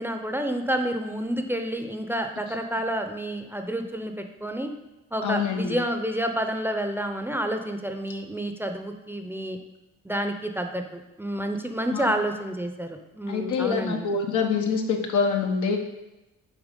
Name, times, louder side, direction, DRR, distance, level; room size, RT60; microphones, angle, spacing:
voice 1, 0.0-4.7 5.1-9.6 10.0-14.1, right 1 dB, 5° right, 5 dB, 0.7 m, -29 dB
voice 2, 5.2-5.8 11.9-12.1 13.3-15.8, left 5 dB, 80° left, 3 dB, 1.2 m, -25 dB
7.2 x 4.7 x 5.2 m, 0.99 s
cardioid pair, 90°, 30 cm